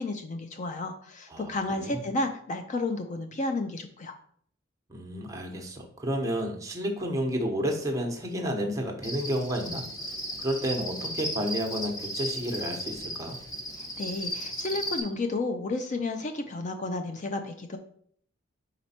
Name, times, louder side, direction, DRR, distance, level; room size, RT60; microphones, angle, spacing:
voice 1, 0.0-4.1 13.8-17.8, left 2 dB, 35° left, 6 dB, 0.4 m, -32 dB
voice 2, 4.9-9.8 10.4-13.4, equal, 15° right, 2 dB, 0.9 m, -31 dB
Cricket, 9.0-15.0, equal, 20° left, 0.9 m, -35 dB
5.0 x 4.4 x 4.3 m, 0.62 s
head